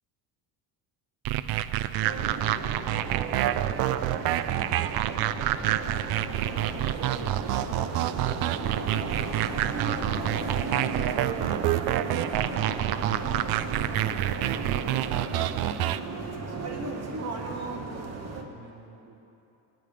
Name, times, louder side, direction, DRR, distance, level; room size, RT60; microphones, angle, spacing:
sound 1, 1.2-16.0, right 13 dB, 60° right, 0.5 m, -28 dB
sound 2, 2.0-18.4, right 3 dB, 35° right, 1.3 m, -35 dB
voice 1, 8.7-15.6 16.1-19.2, right 3 dB, 80° right, 0 dB, 1.9 m, -49 dB
19.0 x 9.3 x 5.0 m, 2.8 s
cardioid pair, 130°, 44 cm